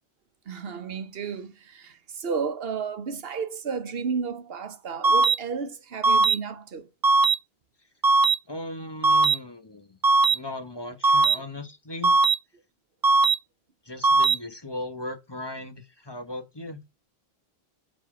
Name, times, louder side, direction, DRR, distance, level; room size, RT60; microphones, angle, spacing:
voice 1, 0.5-6.9, right 6 dB, 70° right, 1.2 m, -32 dB
sound 1, 5.0-5.3 6.0-6.3 7.0-7.3 8.0-8.3 9.0-9.3 10.0-10.3 11.0-11.3 12.0-12.3 13.0-13.3 14.0-14.3, right 3 dB, 30° right, 0.4 m, -19 dB
voice 2, 8.5-10.0 10.3-12.1 13.8-16.8, left 1 dB, 25° left, 1.1 m, -37 dB
8.1 x 4.2 x 5.0 m
omnidirectional pair, 1.0 m